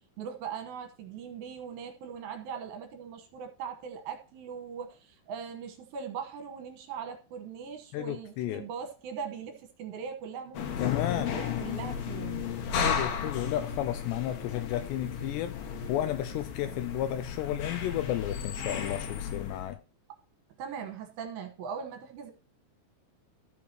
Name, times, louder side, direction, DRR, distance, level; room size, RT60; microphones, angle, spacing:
voice 1, 0.2-10.8 11.1-12.4 20.6-22.3, right 7 dB, 75° right, 3.1 m, -40 dB
voice 2, 7.9-8.7 10.8-11.4 12.7-15.6 15.9-19.8, left 13 dB, 85° left, 2.6 m, -32 dB
sound 1, 10.5-19.7, left 7 dB, 65° left, 2.5 m, -34 dB
13.0 x 4.8 x 4.3 m
omnidirectional pair, 5.4 m